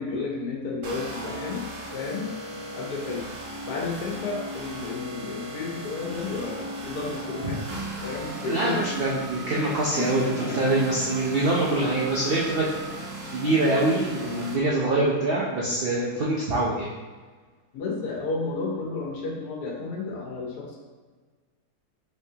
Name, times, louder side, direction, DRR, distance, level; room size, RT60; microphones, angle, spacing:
voice 1, 0.0-1.7 1.9-2.3 2.7-3.3 3.6-7.6 8.0-8.9 9.5-10.6 13.5-13.8 17.7-20.8, left 4 dB, 75° left, -1 dB, 1.4 m, -32 dB
sound 1, 0.8-14.5, right 1 dB, 85° right, 1.6 m, -37 dB
voice 2, 8.4-12.6 13.3-16.9, right 2 dB, 65° right, -5 dB, 0.5 m, -24 dB
5.4 x 3.2 x 2.8 m, 1.4 s
omnidirectional pair, 1.7 m